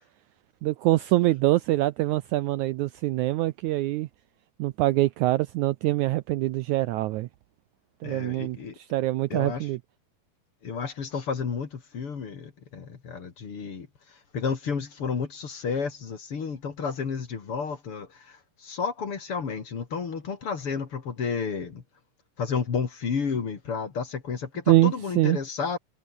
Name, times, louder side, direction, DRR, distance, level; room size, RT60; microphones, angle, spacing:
voice 1, 0.6-4.1 4.6-7.3 8.0-8.6 8.9-9.8 24.7-25.4, right 17 dB, 85° right, 1.7 m, -24 dB
voice 2, 8.0-8.8 9.3-9.7 10.6-21.8 22.4-25.8, left 5 dB, 40° left, 3.1 m, -31 dB
omnidirectional pair, 4.0 m